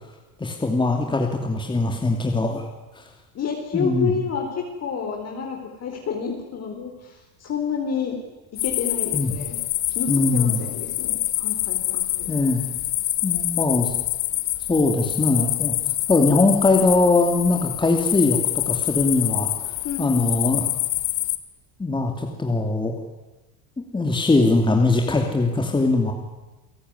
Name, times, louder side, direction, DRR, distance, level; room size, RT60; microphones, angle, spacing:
voice 1, 0.4-2.6 2.9-3.0 3.7-4.1 9.1-9.3 10.1-10.6 12.3-12.6 13.2-13.9 14.7-15.7 16.1-18.4 18.7-20.7 21.8-22.9 23.9-26.1, left 2 dB, 10° left, 2 dB, 2.7 m, -21 dB
voice 2, 3.3-8.2 8.6-9.6 9.9-12.3 19.8-20.6, left 6 dB, 35° left, 1 dB, 4.3 m, -29 dB
sound 1, 8.6-21.4, left 17 dB, 55° left, 2.0 m, -26 dB
29.5 x 17.5 x 9.7 m, 1.1 s
cardioid pair, 150°, 44 cm